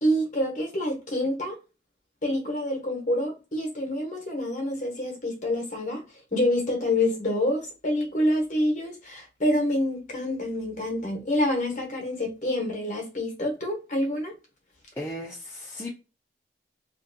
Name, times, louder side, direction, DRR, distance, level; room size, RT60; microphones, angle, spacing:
voice 1, 0.0-1.6 2.2-6.0 6.3-14.3, left 1 dB, 45° left, 0.9 m, -27 dB
voice 2, 15.0-15.9, left 1 dB, 15° left, 0.4 m, -36 dB
2.6 x 2.2 x 2.6 m
head